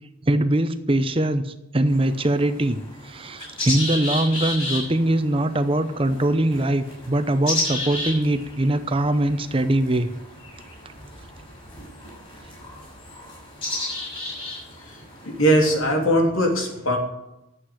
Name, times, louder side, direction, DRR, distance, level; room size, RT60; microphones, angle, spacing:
voice 1, 0.2-2.8 3.0-10.1, right 1 dB, 25° right, 10 dB, 0.8 m, -22 dB
sound 1, 1.9-15.8, left 2 dB, 30° left, 6.9 m, -33 dB
voice 2, 15.2-17.0, equal, 85° left, 2 dB, 3.3 m, -20 dB
11.5 x 8.2 x 9.9 m, 0.92 s
head